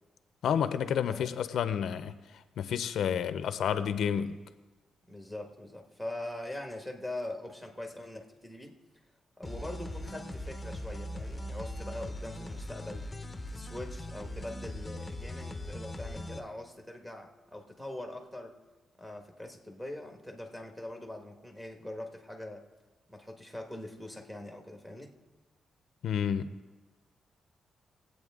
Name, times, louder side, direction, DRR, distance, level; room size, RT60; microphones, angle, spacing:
voice 1, 0.4-2.2 2.6-4.4 26.0-26.6, left 8 dB, 75° left, 0.6 m, -30 dB
voice 2, 5.1-8.7 9.4-13.1 13.5-18.5 19.0-22.6 23.1-25.1, left 1 dB, 5° right, 1.5 m, -42 dB
sound 1, 9.4-16.4, left 1 dB, 10° left, 0.9 m, -40 dB
21.5 x 8.4 x 3.7 m
cardioid pair, 135°, 0 cm